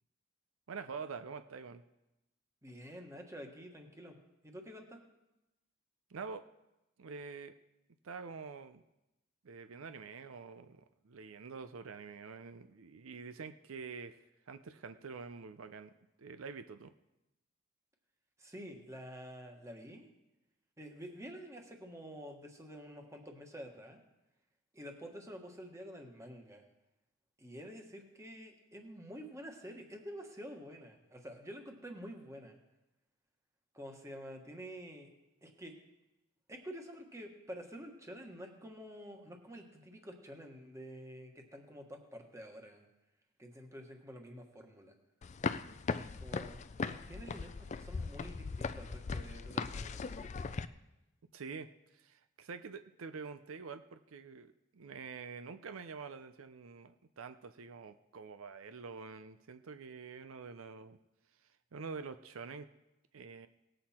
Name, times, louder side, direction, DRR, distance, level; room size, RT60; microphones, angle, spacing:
voice 1, 0.7-1.8 6.1-6.4 7.0-7.6 8.0-8.8 9.4-15.9 16.2-16.9 51.3-61.0 61.7-62.7 63.1-63.5, right 5 dB, 85° right, 11 dB, 0.6 m, -46 dB
voice 2, 2.6-4.2 4.4-5.0 18.4-20.1 20.8-24.0 24.7-26.6 27.4-32.6 33.7-35.1 35.4-35.7 36.5-42.9 43.4-44.9 46.2-46.6 46.9-50.6, equal, 15° right, 3 dB, 1.4 m, -49 dB
sound 1, 45.2-50.6, left 4 dB, 35° left, 0.4 m, -39 dB
18.5 x 7.8 x 4.3 m, 0.94 s
head